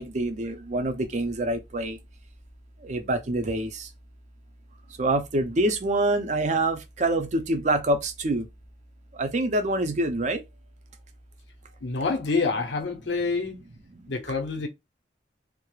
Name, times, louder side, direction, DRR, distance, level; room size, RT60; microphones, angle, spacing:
voice 1, 0.0-2.0 2.8-3.9 5.0-8.4 9.2-10.4, right 2 dB, 45° right, 0.5 m, -26 dB
voice 2, 11.8-13.6 14.1-14.7, left 4 dB, 85° left, 0.7 m, -27 dB
2.3 x 2.0 x 3.0 m
head